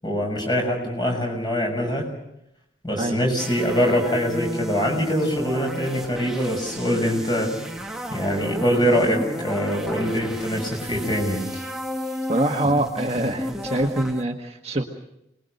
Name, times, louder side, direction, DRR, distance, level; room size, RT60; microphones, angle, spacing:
voice 1, 0.0-2.1 2.8-7.5 8.1-11.4, equal, 25° left, 2 dB, 6.9 m, -23 dB
sound 1, 3.4-14.2, equal, 5° right, 1.6 m, -33 dB
voice 2, 12.3-14.8, right 1 dB, 30° right, 2 dB, 1.6 m, -24 dB
28.0 x 21.0 x 6.7 m, 0.82 s
head